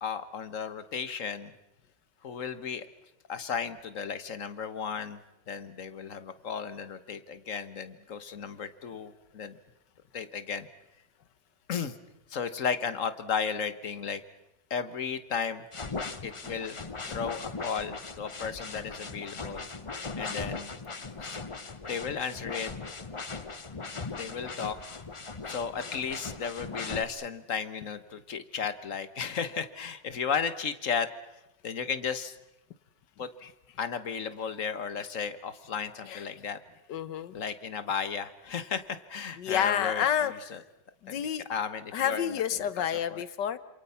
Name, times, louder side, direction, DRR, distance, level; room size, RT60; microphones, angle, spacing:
voice 1, 0.0-1.5 2.2-2.9 3.3-5.2 5.5-9.6 10.1-10.7 11.7-11.9 12.3-14.2 14.7-15.6 16.2-16.8 17.1-19.7 20.2-20.7 21.2-21.4 21.9-22.7 24.1-25.0 25.5-31.1 31.6-32.4 33.2-33.3 33.8-36.6 37.3-40.6 41.1-41.2 41.5-42.3 43.1-43.2, left 6 dB, 50° left, 12 dB, 1.5 m, -34 dB
sound 1, 15.7-27.0, left 4 dB, 25° left, 0.7 m, -39 dB
voice 2, 36.9-37.3 39.4-40.6 41.0-41.4 41.9-43.6, left 9 dB, 80° left, 15 dB, 1.7 m, -29 dB
27.5 x 27.0 x 5.7 m, 0.91 s
omnidirectional pair, 1.9 m